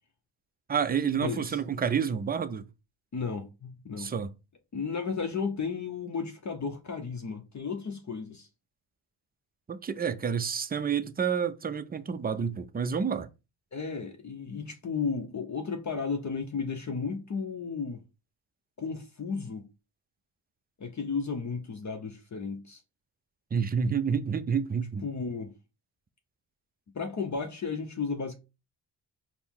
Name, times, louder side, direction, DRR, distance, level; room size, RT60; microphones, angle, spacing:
voice 1, 0.7-2.7 4.0-4.3 9.7-13.3 23.5-25.0, right 7 dB, 20° right, 0.4 m, -29 dB
voice 2, 1.2-1.6 3.1-4.1 4.7-8.5 13.7-18.0 18.8-19.6 20.8-22.8 25.0-25.5 26.9-28.4, left 5 dB, 35° left, 0.7 m, -34 dB
4.3 x 2.1 x 3.6 m
cardioid pair, 60°, 47 cm